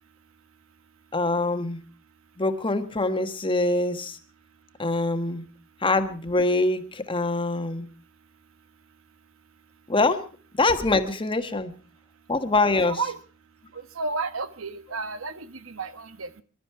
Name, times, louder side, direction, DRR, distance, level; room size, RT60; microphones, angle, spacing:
voice 1, 1.1-1.8 2.4-4.2 4.8-5.4 5.8-7.9 9.9-10.2 10.6-11.7 12.3-13.0, left 2 dB, 25° left, 8 dB, 1.4 m, -24 dB
voice 2, 12.8-13.2 13.9-16.4, right 4 dB, 70° right, 12 dB, 1.2 m, -32 dB
24.0 x 12.0 x 4.7 m, 0.39 s
head